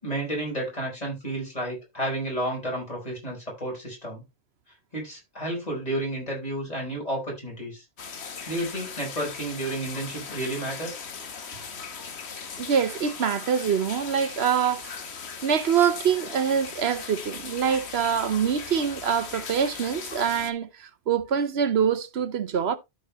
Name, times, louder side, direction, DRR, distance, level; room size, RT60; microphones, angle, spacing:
voice 1, 0.0-4.2 4.9-7.8 8.5-11.1, right 1 dB, 35° left, 5.1 m, -31 dB
sound 1, 8.0-20.5, left 5 dB, 75° left, 1.4 m, -39 dB
voice 2, 12.6-15.0 15.4-22.8, right 7 dB, 70° right, 1.1 m, -25 dB
13.0 x 5.3 x 3.0 m
omnidirectional pair, 1.1 m